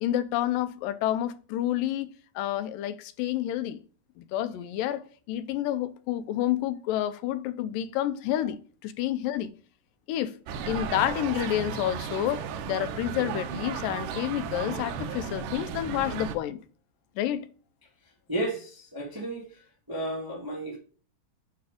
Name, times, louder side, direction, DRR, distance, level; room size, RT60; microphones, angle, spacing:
voice 1, 0.0-3.8 4.2-5.0 5.3-8.6 8.8-9.5 10.1-10.3 10.7-16.6 17.2-17.5, left 12 dB, 90° left, 2.3 m, -29 dB
sound 1, 10.5-16.4, right 6 dB, 80° right, 2.3 m, -35 dB
voice 2, 18.3-19.5 19.9-20.8, right 1 dB, 25° right, 0.5 m, -32 dB
8.9 x 3.4 x 5.0 m
omnidirectional pair, 3.9 m